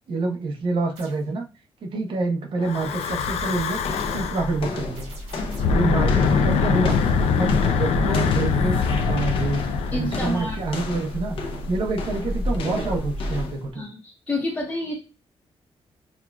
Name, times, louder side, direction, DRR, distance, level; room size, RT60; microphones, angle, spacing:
voice 1, 0.1-1.5 1.8-3.8 4.1-5.1 5.7-7.0 7.4-8.8 9.1-9.6 9.9-11.4 11.7-13.9, right 3 dB, 55° right, 2 dB, 0.9 m, -27 dB
sound 1, 0.9-1.3 3.0-3.4 4.9-5.9, right 2 dB, 75° right, 2.1 m, -47 dB
Breathing / Wind, 2.6-4.6 5.5-10.9, left 5 dB, 90° left, 0.4 m, -23 dB
sound 2, 3.8-13.7, left 1 dB, 60° left, 0.7 m, -32 dB
voice 2, 9.9-10.6 13.7-14.9, left 1 dB, 10° left, -4 dB, 0.8 m, -29 dB
6.0 x 2.4 x 2.3 m, 0.32 s
wide cardioid pair, 180°, 10 cm